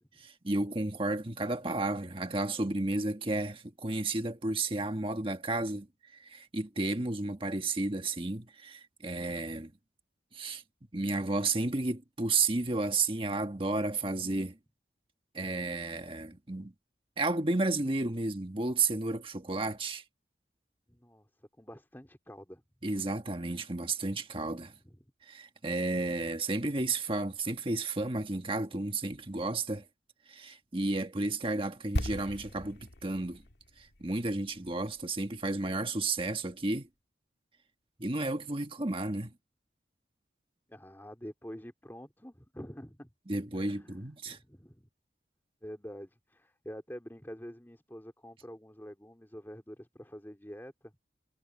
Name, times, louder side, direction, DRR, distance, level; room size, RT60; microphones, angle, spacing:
voice 1, 0.2-5.9 6.1-9.7 10.3-10.6 10.9-14.6 15.3-16.7 17.2-20.0 22.8-24.7 25.2-29.8 30.3-33.4 33.8-36.9 38.0-39.3 43.3-44.4, right 2 dB, 30° right, 1.5 m, -32 dB
voice 2, 20.9-22.6 24.8-25.0 40.7-43.1 43.6-44.0 44.3-44.9 45.6-50.9, equal, 10° left, 3.3 m, -47 dB
sound 1, 32.0-35.9 36.1-36.3, left 1 dB, 70° left, 1.8 m, -39 dB
head